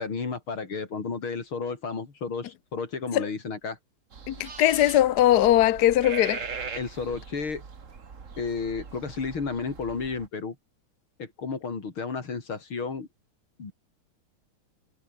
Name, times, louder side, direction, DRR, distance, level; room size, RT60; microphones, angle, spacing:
voice 1, 0.0-3.8 6.8-7.6 8.4-10.6 11.2-13.1 13.6-13.7, left 4 dB, 85° left, 4.4 m, -32 dB
sound 1, 4.1-10.3, right 5 dB, 40° right, 2.0 m, -40 dB
voice 2, 4.3-6.4, left 13 dB, 65° left, 1.2 m, -20 dB
omnidirectional pair, 2.2 m